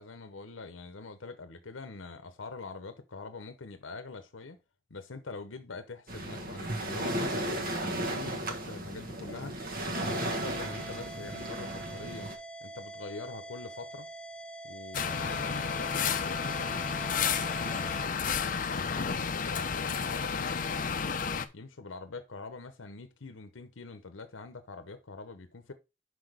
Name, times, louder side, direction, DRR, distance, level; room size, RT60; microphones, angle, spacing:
voice 1, 0.0-4.6 4.9-9.6 9.9-12.3 12.6-14.1 14.6-17.8 18.3-21.2 21.5-25.7, left 3 dB, 85° left, 0.9 m, -44 dB
Waves surf, 6.1-12.3, right 1 dB, 50° right, 1.3 m, -35 dB
sound 1, 9.9-18.1, right 2 dB, 5° left, 0.5 m, -45 dB
sound 2, 14.9-21.5, left 6 dB, 45° left, 0.6 m, -31 dB
6.0 x 4.9 x 4.9 m
head